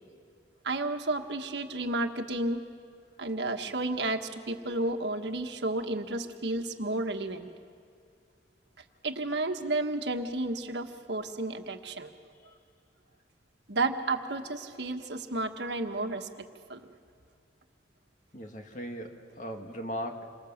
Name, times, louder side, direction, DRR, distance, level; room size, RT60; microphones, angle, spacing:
voice 1, 0.6-2.6 3.2-7.5 9.0-12.1 13.7-16.3 16.7-16.8, right 2 dB, 70° right, 5 dB, 1.5 m, -32 dB
voice 2, 18.3-20.3, equal, 45° left, 3 dB, 2.2 m, -38 dB
28.5 x 24.5 x 7.3 m, 2.3 s
head